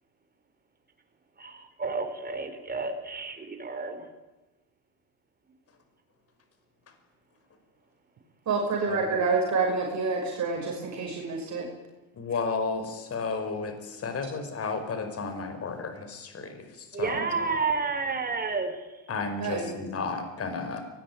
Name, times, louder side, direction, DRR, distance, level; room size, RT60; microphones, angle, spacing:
voice 1, 1.4-4.1 16.9-19.0, right 4 dB, 20° right, 6 dB, 4.7 m, -31 dB
voice 2, 8.5-11.7 17.1-17.2 19.4-19.8, right 4 dB, 45° right, 0 dB, 5.9 m, -28 dB
voice 3, 12.2-17.1 19.1-20.8, left 4 dB, 35° left, 8 dB, 5.1 m, -33 dB
23.5 x 20.0 x 9.4 m, 1.1 s
supercardioid pair, 100°, 40 cm